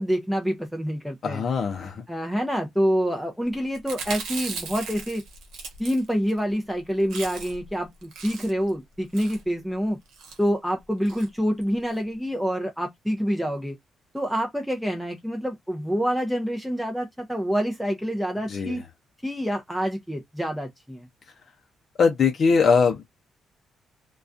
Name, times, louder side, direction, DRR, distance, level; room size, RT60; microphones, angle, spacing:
voice 1, 0.0-1.4 2.1-5.2 5.8-10.0 10.4-13.8 14.1-18.8 19.2-21.1, equal, ahead, 0.5 m, -27 dB
voice 2, 1.2-2.0 18.5-18.8 22.0-23.0, left 5 dB, 55° left, 0.5 m, -21 dB
Chewing mastication, 3.7-6.4 6.7-6.8 7.0-7.7 8.0-8.7 9.1-9.5 10.1-10.4 11.1-11.3 11.6-11.7 11.9-12.0, right 5 dB, 90° right, 0.8 m, -37 dB
2.3 x 2.2 x 2.5 m
cardioid pair, 90°, 0 cm